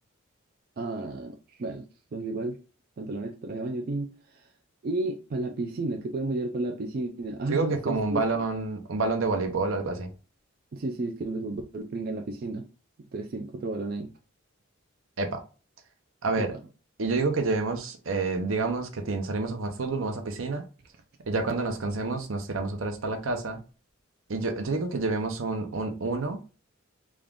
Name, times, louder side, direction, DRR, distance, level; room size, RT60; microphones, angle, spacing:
voice 1, 0.8-1.9 2.1-2.6 3.0-4.5 4.8-8.2 10.7-12.7 13.1-14.1 16.4-16.6, right 2 dB, 45° right, 0.4 m, -32 dB
voice 2, 7.5-10.1 15.2-15.4 16.2-16.5 17.0-20.6 21.3-23.6 24.3-26.4, right 3 dB, 75° right, 0.7 m, -28 dB
3.6 x 2.4 x 3.6 m
head